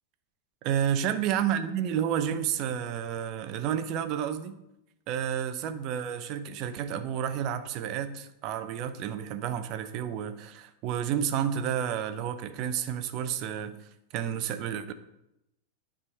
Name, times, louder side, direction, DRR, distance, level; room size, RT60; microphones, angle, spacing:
voice 1, 0.6-4.6 5.1-13.8 14.1-14.9, right 9 dB, 40° right, 11 dB, 0.8 m, -30 dB
9.8 x 4.9 x 5.9 m, 0.86 s
figure-of-eight pair, 90°, 0 cm